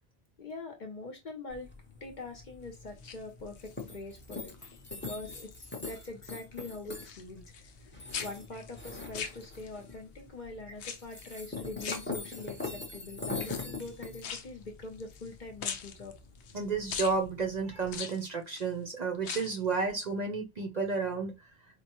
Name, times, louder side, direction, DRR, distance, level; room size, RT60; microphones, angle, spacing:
voice 1, 0.4-1.7 2.0-4.5 4.9-16.1, left 3 dB, 45° left, 0.8 m, -44 dB
sound 1, 1.5-17.9, left 3 dB, 10° left, 0.7 m, -43 dB
sound 2, 2.9-3.8 4.3-4.7 5.0-6.1 6.3-7.9 8.1-9.9 10.8-11.4 11.8-12.7 13.4-15.3 15.6-16.6 16.9-17.2 17.9-18.7 19.1-19.7 20.0-20.1, left 7 dB, 75° left, 0.8 m, -41 dB
voice 2, 16.5-21.3, right 4 dB, 45° right, 0.7 m, -32 dB
4.5 x 2.1 x 3.0 m
omnidirectional pair, 1.2 m